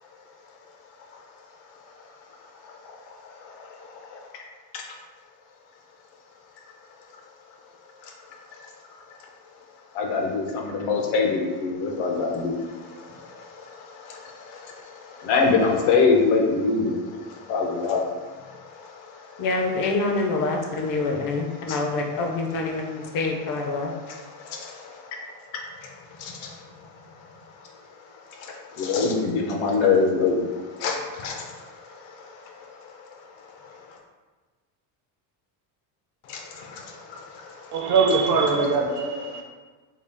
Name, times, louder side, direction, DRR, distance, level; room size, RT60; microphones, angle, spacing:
voice 1, 2.6-4.3 4.7-4.8 8.0-8.1 8.5-8.6 9.9-19.4 21.7-21.8 24.1-25.3 25.5-34.0 36.3-37.9 39.3-39.4, left 4 dB, 75° left, 1 dB, 0.8 m, -27 dB
voice 2, 19.4-23.9, left 3 dB, 45° left, 2 dB, 0.6 m, -26 dB
voice 3, 37.7-39.4, right 4 dB, 40° right, 2 dB, 0.5 m, -22 dB
3.8 x 2.3 x 3.4 m, 1.3 s
cardioid pair, 150°, 47 cm